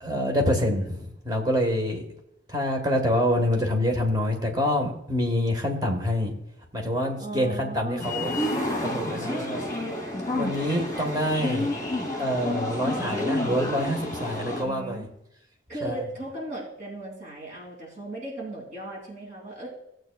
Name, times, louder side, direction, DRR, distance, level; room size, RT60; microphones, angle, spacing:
voice 1, 0.0-2.0 2.5-6.3 6.7-8.3 8.8-9.6 10.3-15.1 15.8-16.0, equal, 20° right, 2 dB, 1.4 m, -26 dB
voice 2, 7.2-8.2 14.6-15.1 15.7-19.7, right 2 dB, 45° right, -2 dB, 3.1 m, -37 dB
sound 1, 8.0-14.6, left 1 dB, 20° left, 2.2 m, -29 dB
15.5 x 7.8 x 2.3 m, 0.81 s
head